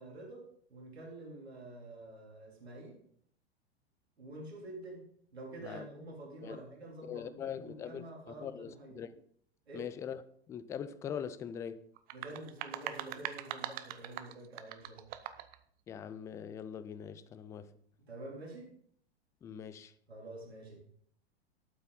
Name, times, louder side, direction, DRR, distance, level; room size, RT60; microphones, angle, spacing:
voice 1, 0.0-3.0 4.2-5.0 5.3-9.0 9.7-9.9 12.1-15.1 18.1-18.7 20.1-20.8, right 2 dB, 70° right, 3.5 m, -48 dB
voice 2, 7.1-8.0 8.4-9.2 9.7-10.2 10.5-11.9 15.9-17.7 19.4-19.9, left 8 dB, 10° left, 0.3 m, -42 dB
sound 1, 12.0-15.6, right 12 dB, 30° right, 0.7 m, -42 dB
12.5 x 8.8 x 4.1 m
figure-of-eight pair, 95°, 32 cm